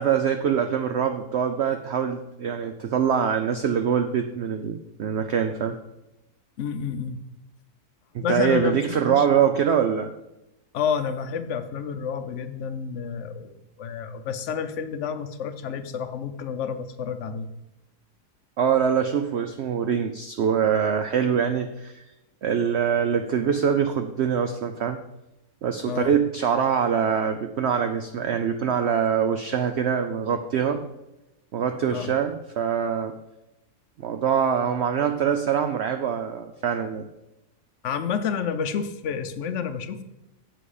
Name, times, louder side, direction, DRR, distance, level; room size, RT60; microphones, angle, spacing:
voice 1, 0.0-5.8 8.1-10.1 18.6-22.0 22.4-25.0 25.6-30.8 31.5-33.1 34.0-37.1, right 7 dB, 70° right, 7 dB, 0.6 m, -24 dB
voice 2, 6.6-7.2 8.2-8.8 9.1-9.4 10.7-17.5 25.9-26.1 31.9-32.1 37.8-40.0, left 7 dB, 60° left, 10 dB, 0.9 m, -29 dB
7.9 x 7.5 x 4.9 m, 0.93 s
omnidirectional pair, 1.7 m